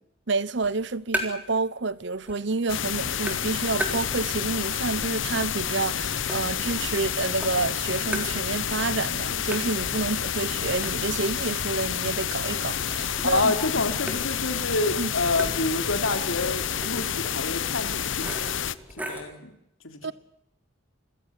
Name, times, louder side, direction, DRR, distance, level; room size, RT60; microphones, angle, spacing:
voice 1, 0.3-13.5 15.0-15.1 20.0-20.1, right 3 dB, 60° right, 0.9 m, -29 dB
sound 1, 0.6-1.6 1.9-2.6 2.9-4.5 4.9-7.1 7.4-8.8 9.1-9.2 9.5-19.4, right 1 dB, 10° right, 3.9 m, -38 dB
sound 2, 2.7-18.7, left 8 dB, 70° left, 0.9 m, -29 dB
voice 2, 13.2-18.6 19.1-19.5 19.8-20.0, left 2 dB, 85° left, 3.5 m, -28 dB
27.5 x 16.0 x 8.3 m
head